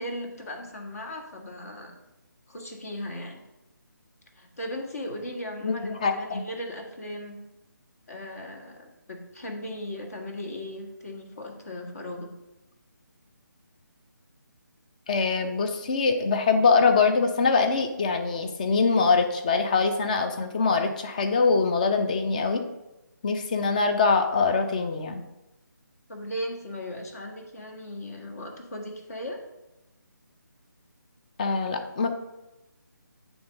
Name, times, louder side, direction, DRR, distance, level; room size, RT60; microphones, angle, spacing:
voice 1, 0.0-2.0 2.5-3.4 4.4-7.4 8.1-12.3 26.1-29.4, left 1 dB, 50° left, 2 dB, 1.6 m, -37 dB
voice 2, 5.6-6.4 15.1-22.6 23.2-25.2 31.4-32.1, left 4 dB, 25° left, 6 dB, 0.6 m, -23 dB
8.7 x 3.5 x 5.2 m, 0.98 s
figure-of-eight pair, 150°, 11 cm